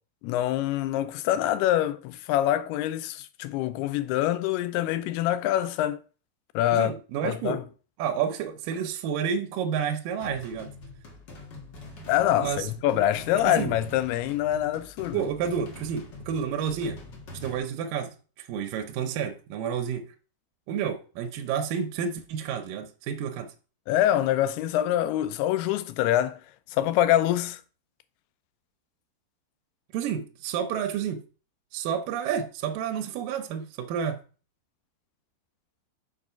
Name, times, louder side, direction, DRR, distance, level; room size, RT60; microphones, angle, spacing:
voice 1, 0.2-6.0 6.5-7.0 7.2-7.6 12.1-15.2 23.9-26.4 26.7-27.6, left 12 dB, 80° left, 2.5 m, -25 dB
voice 2, 6.7-7.6 8.0-10.7 12.4-12.7 13.4-13.7 15.1-17.0 17.4-20.1 20.7-23.5 29.9-31.2 31.7-34.2, right 7 dB, 75° right, 2.1 m, -30 dB
sound 1, 10.2-17.6, left 2 dB, 55° left, 1.2 m, -44 dB
5.9 x 4.9 x 5.7 m
omnidirectional pair, 4.7 m